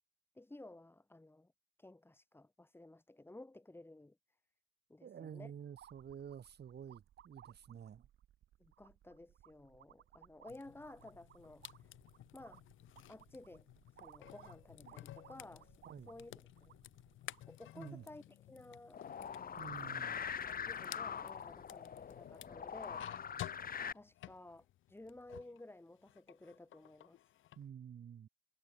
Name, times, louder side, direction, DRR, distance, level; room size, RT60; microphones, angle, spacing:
voice 1, 0.3-1.5 1.8-4.2 4.9-5.5 8.6-11.9 12.3-12.6 13.1-13.7 14.0-15.8 16.1-16.7 17.5-20.0 20.6-23.1 23.9-27.2, left 2 dB, 10° left, 2.3 m, -55 dB
voice 2, 5.0-8.1 15.9-16.1 17.7-18.1 19.6-20.3 27.6-28.3, right 8 dB, 55° right, 7.0 m, -50 dB
sound 1, 5.8-17.5, right 11 dB, 70° right, 6.0 m, -63 dB
sound 2, 10.5-25.6 26.0-27.6, left 14 dB, 80° left, 2.3 m, -54 dB
sound 3, 18.9-23.9, left 7 dB, 45° left, 2.6 m, -43 dB
cardioid pair, 90°, 20 cm